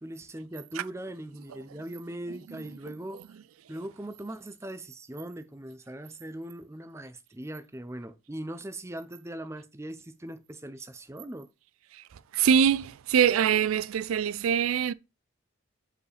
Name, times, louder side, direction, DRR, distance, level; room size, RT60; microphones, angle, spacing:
voice 1, 0.0-3.2 3.7-11.5, right 1 dB, 15° right, 0.6 m, -40 dB
voice 2, 2.5-3.2 11.9-14.9, right 8 dB, 85° right, 0.4 m, -25 dB
4.9 x 4.8 x 5.0 m
head